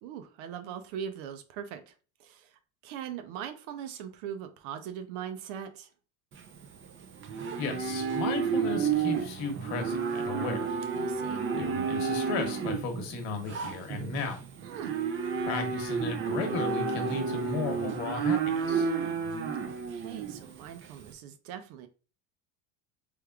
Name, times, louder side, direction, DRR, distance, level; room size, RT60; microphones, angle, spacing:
voice 1, 0.0-5.9 10.9-11.4 14.6-15.0 19.6-21.9, right 9 dB, 75° right, 0.6 m, -41 dB
Livestock farm animals working animals, 6.3-21.1, right 6 dB, 30° right, 0.4 m, -31 dB
voice 2, 7.6-10.7 11.5-14.4 15.4-18.9, left 4 dB, 75° left, 1.0 m, -35 dB
3.4 x 3.1 x 2.3 m
supercardioid pair, 100°, 44 cm